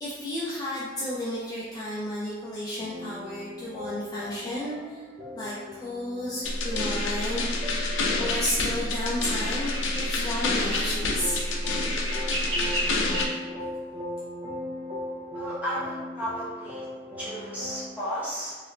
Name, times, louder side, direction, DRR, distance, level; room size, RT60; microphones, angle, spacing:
voice 1, 0.0-5.1 5.3-7.8 8.2-11.4, left 1 dB, 20° left, -8 dB, 0.4 m, -32 dB
sound 1, 2.8-17.9, left 1 dB, 35° right, 0.5 m, -39 dB
sound 2, 6.4-13.3, left 2 dB, 90° left, 0.5 m, -28 dB
sound 3, 8.3-8.6 9.5-10.1 10.5-10.9 11.4-13.2, right 1 dB, 60° right, 1.0 m, -34 dB
voice 2, 15.3-16.9 17.2-18.6, equal, 10° right, -9 dB, 1.0 m, -33 dB
2.9 x 2.5 x 3.1 m, 1.4 s
head